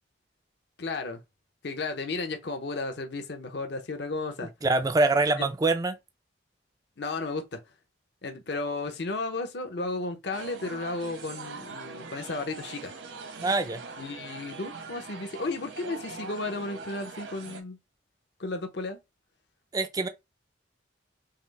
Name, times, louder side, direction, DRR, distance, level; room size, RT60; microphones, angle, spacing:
voice 1, 0.8-1.2 1.6-4.5 5.4-5.5 7.0-7.6 8.2-12.9 14.0-17.8 18.4-19.0, left 3 dB, 60° left, 0.7 m, -34 dB
voice 2, 4.6-6.0 13.4-13.8 19.7-20.1, right 3 dB, 20° right, 0.3 m, -24 dB
sound 1, 10.3-17.6, right 4 dB, 75° right, 1.0 m, -42 dB
5.6 x 2.0 x 3.2 m
head